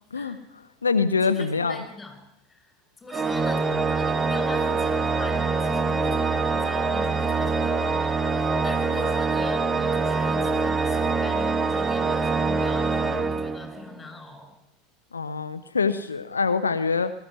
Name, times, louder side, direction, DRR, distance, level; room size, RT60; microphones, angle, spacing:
voice 1, 0.1-1.8 15.1-17.1, left 5 dB, 80° left, 10 dB, 0.8 m, -25 dB
voice 2, 1.2-2.1 2.5-2.7 3.0-14.5, left 2 dB, 15° left, 7 dB, 6.4 m, -41 dB
Organ, 3.1-14.0, right 4 dB, 20° right, 1.5 m, -24 dB
20.0 x 14.5 x 9.6 m, 0.83 s
figure-of-eight pair, 80°, 0 cm